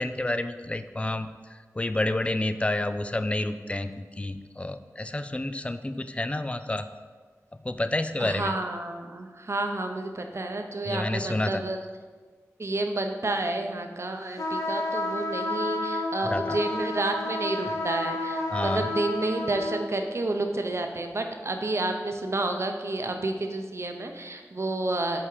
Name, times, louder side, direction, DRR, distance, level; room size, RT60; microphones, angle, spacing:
voice 1, 0.0-6.9 7.6-8.5 10.9-11.6 16.2-16.6 18.5-18.9, left 2 dB, 20° left, 10 dB, 0.4 m, -29 dB
voice 2, 8.2-11.8 12.6-25.2, right 2 dB, 50° right, 5 dB, 0.7 m, -30 dB
sound 1, 14.4-19.8, left 2 dB, 85° left, 0.8 m, -31 dB
5.7 x 4.9 x 4.8 m, 1.4 s
wide cardioid pair, 70°, 6 cm